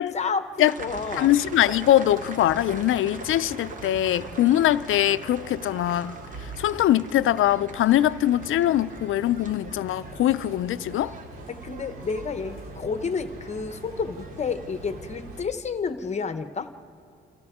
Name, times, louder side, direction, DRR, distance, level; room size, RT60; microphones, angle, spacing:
voice 1, 0.1-1.3 11.5-16.7, left 5 dB, 35° left, 0.8 m, -30 dB
sound 1, 0.7-15.4, right 3 dB, 40° right, 1.0 m, -45 dB
sound 2, 0.8-15.4, right 2 dB, 90° right, 2.7 m, -42 dB
voice 2, 1.1-6.2 6.6-11.1, left 12 dB, 75° left, 0.4 m, -22 dB
29.5 x 28.5 x 3.6 m
wide cardioid pair, 180°, 21 cm